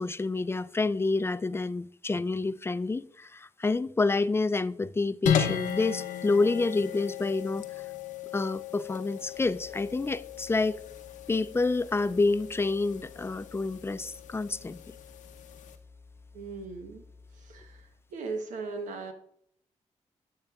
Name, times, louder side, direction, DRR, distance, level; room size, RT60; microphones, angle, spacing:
voice 1, 0.0-7.6 8.3-10.8 11.3-14.8, left 3 dB, 20° left, 0.4 m, -28 dB
sound 1, 5.3-15.8, left 8 dB, 85° left, 0.7 m, -36 dB
sound 2, 9.3-18.0, left 4 dB, 50° right, 3.4 m, -54 dB
voice 2, 16.3-17.0 17.4-19.1, right 4 dB, 85° right, 1.0 m, -38 dB
9.9 x 6.7 x 2.4 m
supercardioid pair, 45°, 13 cm